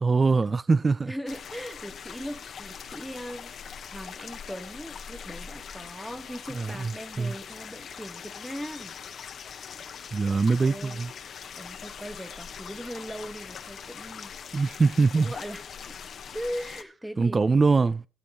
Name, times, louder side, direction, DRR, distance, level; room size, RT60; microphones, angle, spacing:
voice 1, 0.0-1.1 6.5-6.9 7.2-7.3 10.1-11.1 14.5-15.3 17.2-18.0, right 4 dB, 30° right, 0.5 m, -23 dB
voice 2, 1.1-3.5 3.9-9.0 10.6-11.0 11.6-14.3 15.2-16.0 16.3-17.6, equal, 5° right, 1.5 m, -39 dB
sound 1, 1.3-16.8, left 7 dB, 60° left, 1.1 m, -42 dB
16.0 x 7.8 x 4.2 m
cardioid pair, 90°, 0 cm